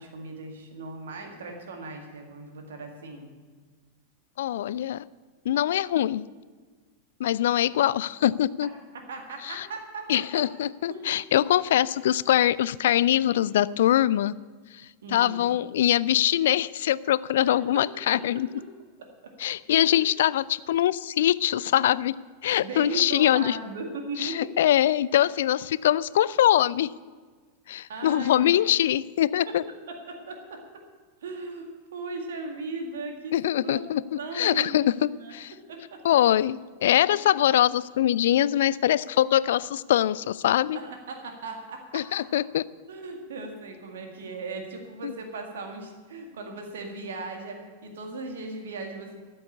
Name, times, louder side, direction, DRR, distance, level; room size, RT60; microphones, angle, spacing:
voice 1, 0.0-3.3 8.9-10.5 10.9-11.1 15.0-15.6 17.7-18.2 18.5-18.7 19.0-19.3 19.9-20.0 22.6-24.5 27.9-28.5 29.5-29.6 29.9-30.8 31.2-33.8 34.2-36.0 37.1-37.2 40.7-42.2 42.9-49.2, right 3 dB, 60° right, 4 dB, 1.9 m, -38 dB
voice 2, 4.4-5.0 5.5-6.2 7.2-8.7 9.5-9.7 10.1-14.3 15.1-18.5 19.4-22.2 22.4-23.6 24.2-26.9 27.7-29.6 33.3-35.5 36.0-40.8 41.9-42.7 45.0-45.1, left 12 dB, 60° left, 20 dB, 0.3 m, -23 dB
13.5 x 7.7 x 8.2 m, 1.5 s
figure-of-eight pair, 90°, 0 cm